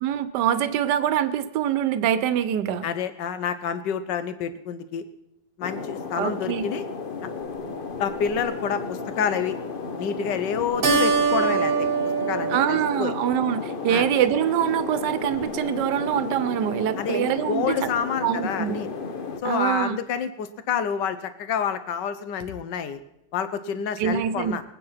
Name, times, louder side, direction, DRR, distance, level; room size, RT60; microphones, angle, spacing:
voice 1, 0.0-2.9 6.2-6.6 12.5-17.8 18.2-18.8 19.4-20.0 24.0-24.6, right 10 dB, 80° right, 13 dB, 1.4 m, -24 dB
voice 2, 2.8-5.0 5.6-6.8 7.2-7.3 8.0-9.6 10.0-11.9 12.3-13.1 13.9-14.1 17.0-18.9 19.4-23.0 23.3-24.6, left 7 dB, 90° left, 11 dB, 1.6 m, -28 dB
sound 1, 5.6-19.4, left 4 dB, 40° left, 0.9 m, -33 dB
Keyboard (musical), 10.8-13.7, right 5 dB, 40° right, 1.1 m, -24 dB
21.5 x 9.2 x 5.7 m, 0.84 s
omnidirectional pair, 1.8 m